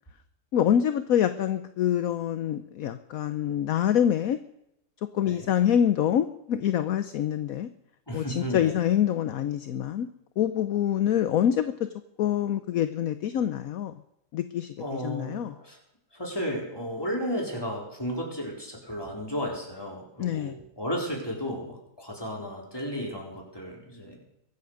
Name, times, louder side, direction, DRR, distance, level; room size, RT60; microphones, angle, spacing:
voice 1, 0.5-4.4 5.1-7.7 8.1-10.1 10.4-11.7 12.2-13.9 14.3-15.5 20.2-20.6, left 10 dB, 65° left, 11 dB, 1.1 m, -26 dB
voice 2, 8.1-8.8 14.8-15.8 16.1-24.2, equal, 15° left, -1 dB, 4.1 m, -34 dB
23.0 x 8.5 x 6.5 m, 0.81 s
omnidirectional pair, 1.8 m